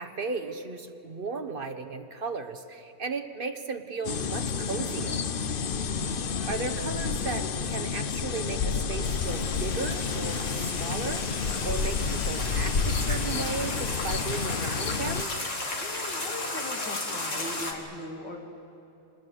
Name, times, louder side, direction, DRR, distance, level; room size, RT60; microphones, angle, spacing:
voice 1, 0.0-5.2 6.4-15.4, right 4 dB, 35° right, 7 dB, 1.2 m, -35 dB
sound 1, 4.0-15.2, left 5 dB, 60° left, 0.5 m, -30 dB
voice 2, 5.6-6.2 15.8-18.4, left 1 dB, 75° left, 1 dB, 3.5 m, -40 dB
sound 2, 9.0-17.7, left 2 dB, 45° left, 2.6 m, -35 dB
26.5 x 19.5 x 8.2 m, 2.8 s
omnidirectional pair, 1.9 m